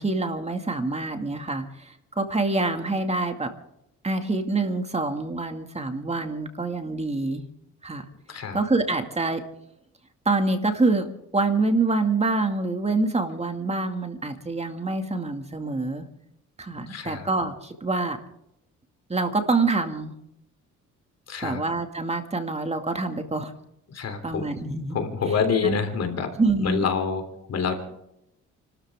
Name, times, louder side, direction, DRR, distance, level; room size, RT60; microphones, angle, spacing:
voice 1, 0.0-3.5 4.0-7.4 7.8-8.1 8.5-9.4 10.3-16.1 16.6-18.2 19.1-20.1 21.4-23.5 24.2-25.0 25.3-25.4 25.6-25.8 26.4-26.9, right 3 dB, 20° right, 6 dB, 2.2 m, -26 dB
voice 2, 16.7-17.3 21.3-21.6 23.9-24.5 24.9-26.3 26.6-27.2 27.5-27.8, left 6 dB, 55° left, 7 dB, 3.4 m, -27 dB
30.0 x 13.0 x 3.7 m, 0.82 s
cardioid pair, 90°, 30 cm